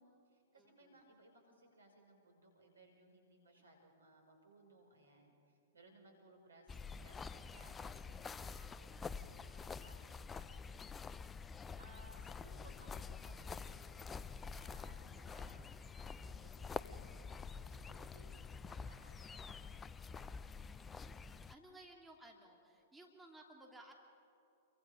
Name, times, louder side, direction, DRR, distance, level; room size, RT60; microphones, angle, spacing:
voice 1, 0.0-11.1 11.5-14.3 14.6-20.4, right 1 dB, 80° right, 2 dB, 5.6 m, -64 dB
voice 2, 0.6-1.0 20.7-21.2 21.5-23.9, right 1 dB, 5° right, 0 dB, 2.8 m, -59 dB
sound 1, 6.7-21.5, left 5 dB, 15° left, 0.5 m, -48 dB
29.0 x 23.5 x 5.2 m, 2.7 s
figure-of-eight pair, 105°, 0 cm